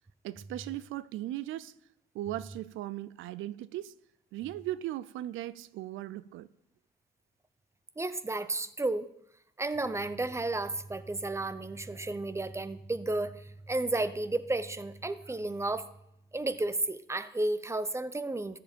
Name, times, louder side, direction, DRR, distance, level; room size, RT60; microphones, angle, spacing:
voice 1, 0.2-1.7 2.1-3.9 4.3-6.5, right 14 dB, 85° right, 0.4 m, -38 dB
voice 2, 8.0-9.1 9.6-15.9 16.3-18.6, right 2 dB, 15° right, 0.7 m, -32 dB
13.5 x 7.7 x 4.4 m
cardioid pair, 90°, 20 cm